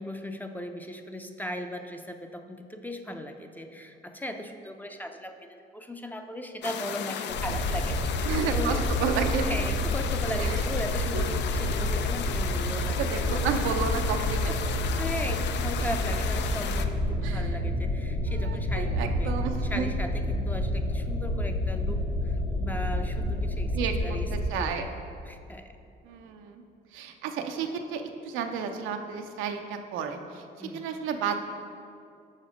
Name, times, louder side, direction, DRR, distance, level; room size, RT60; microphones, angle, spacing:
voice 1, 0.0-8.9 9.4-13.4 14.2-14.6 15.0-19.3 19.6-23.7 24.0-24.9 25.3-25.7 30.6-30.9, left 1 dB, 10° left, 6 dB, 0.5 m, -38 dB
sound 1, 6.6-16.9, left 8 dB, 65° left, 0.4 m, -34 dB
sound 2, 7.3-24.5, left 1 dB, 85° left, 0.9 m, -29 dB
voice 2, 8.2-9.5 10.4-10.6 11.1-11.4 13.0-15.0 17.2-17.6 18.3-19.9 23.7-24.2 24.5-24.9 26.0-26.6 26.9-31.4, right 6 dB, 85° right, 5 dB, 0.5 m, -32 dB
6.4 x 4.1 x 4.9 m, 2.4 s
supercardioid pair, 70°, 20 cm